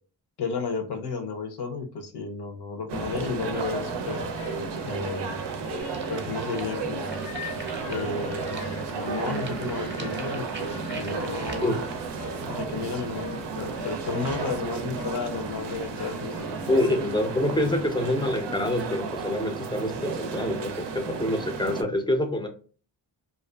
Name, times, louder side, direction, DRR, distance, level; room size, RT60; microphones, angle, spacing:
voice 1, 0.4-4.3 4.8-5.4 6.1-7.3 7.9-11.8 12.4-13.3 13.6-16.8, left 4 dB, 65° left, 5 dB, 0.7 m, -33 dB
sound 1, 2.9-21.8, right 5 dB, 75° right, 0.5 m, -33 dB
sound 2, 4.0-17.9, left 5 dB, 90° left, 1.1 m, -42 dB
sound 3, 5.8-11.8, right 2 dB, 25° right, 0.7 m, -44 dB
voice 2, 16.7-22.5, left 1 dB, 10° left, 5 dB, 0.5 m, -26 dB
2.5 x 2.3 x 2.2 m, 0.39 s
cardioid pair, 55°, 43 cm